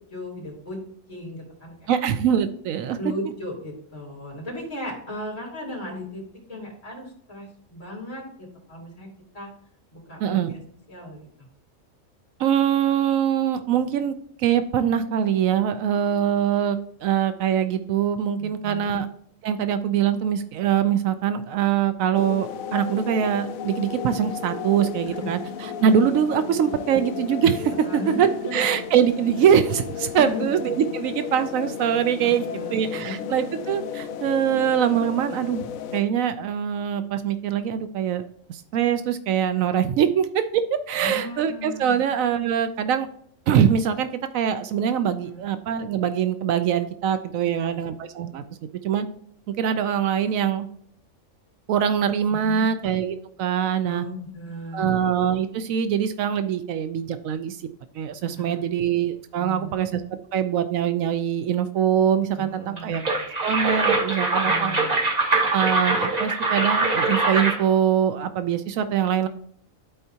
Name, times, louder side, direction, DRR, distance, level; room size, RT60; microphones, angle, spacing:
voice 1, 0.1-0.8 1.1-1.9 3.0-6.2 6.5-9.1 9.3-9.5 9.9-10.6 10.9-11.3 18.4-18.9 25.0-25.3 27.7-28.6 30.1-30.4 32.2-33.5 40.9-42.0 45.2-45.4 47.3-47.8 52.3-52.7 53.8-55.0 58.3-58.7 59.4-59.7 62.3-63.2 64.4-65.0, left 1 dB, 25° left, -5 dB, 3.2 m, -36 dB
voice 2, 1.9-3.0 10.2-10.5 12.4-19.1 19.4-32.4 32.7-35.7 35.9-38.2 38.5-43.1 43.5-44.1 44.3-48.4 48.8-49.1 49.6-50.7 51.7-54.0 54.7-57.6 57.9-60.0 60.3-63.0 63.4-64.8 65.5-69.3, right 9 dB, 85° right, 10 dB, 1.0 m, -23 dB
sound 1, 22.1-36.0, left 7 dB, 85° left, 1.0 m, -34 dB
sound 2, 62.8-67.7, right 3 dB, 30° right, 1.5 m, -23 dB
12.0 x 4.5 x 2.8 m, 0.64 s
omnidirectional pair, 1.4 m